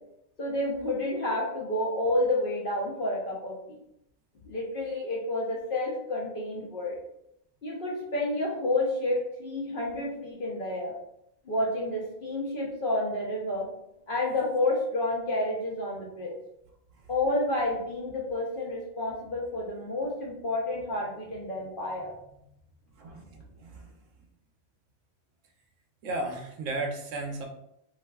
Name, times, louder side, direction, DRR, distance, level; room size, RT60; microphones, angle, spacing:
voice 1, 0.4-3.5 4.5-7.0 7.6-10.9 11.5-13.7 14.1-16.3 17.1-22.1, left 1 dB, 55° left, -3 dB, 0.7 m, -30 dB
voice 2, 23.0-24.0 26.0-27.5, right 2 dB, 75° right, 2 dB, 0.9 m, -35 dB
3.5 x 2.5 x 2.2 m, 0.80 s
omnidirectional pair, 1.3 m